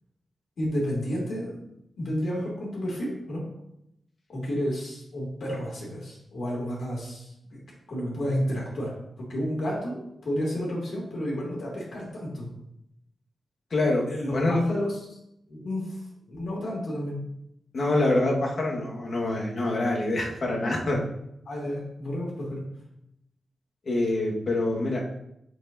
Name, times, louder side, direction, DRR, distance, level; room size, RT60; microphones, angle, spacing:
voice 1, 0.6-1.6 2.0-3.4 4.3-7.6 7.9-12.5 14.0-15.2 15.5-17.2 21.4-22.6, equal, 70° left, -4 dB, 2.7 m, -31 dB
voice 2, 13.7-14.0 14.3-14.6 17.7-21.0 23.8-25.0, left 2 dB, 55° left, -2 dB, 1.6 m, -25 dB
6.7 x 6.6 x 2.8 m, 0.79 s
wide cardioid pair, 120°, 0 cm